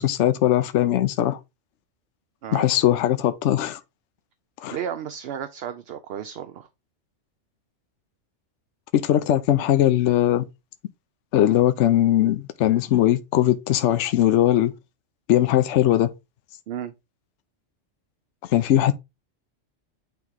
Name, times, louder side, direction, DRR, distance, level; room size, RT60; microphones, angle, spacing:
voice 1, 0.0-1.4 2.5-3.8 4.6-4.8 8.9-10.5 11.3-14.7 15.3-16.1 18.5-18.9, left 12 dB, 70° left, 0.9 m, -20 dB
voice 2, 4.7-6.7 16.7-16.9, right 9 dB, 60° right, 0.8 m, -33 dB
8.9 x 3.0 x 3.6 m
omnidirectional pair, 1.3 m